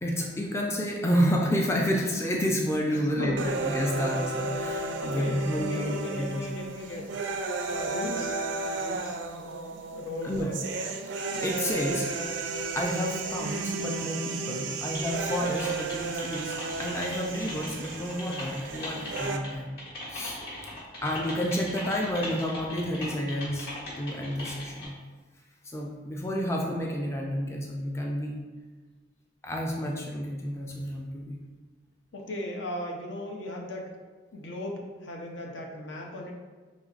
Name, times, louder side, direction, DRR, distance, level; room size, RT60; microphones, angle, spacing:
voice 1, 0.0-6.5 10.2-10.5 11.4-12.1 12.7-19.7 20.1-20.4 21.0-23.7 24.0-25.0 25.6-28.4 29.4-31.4, equal, 15° left, -1 dB, 0.3 m, -30 dB
voice 2, 2.9-3.6 5.0-7.2 7.7-8.4 8.8-10.6 11.6-11.8 32.1-33.9 34.3-36.3, left 1 dB, 70° left, 0 dB, 0.7 m, -37 dB
sound 1, 3.4-19.4, right 3 dB, 70° right, 0.4 m, -33 dB
Typing, 14.9-24.9, left 1 dB, 55° left, 1.4 m, -39 dB
5.1 x 3.1 x 2.4 m, 1.3 s
head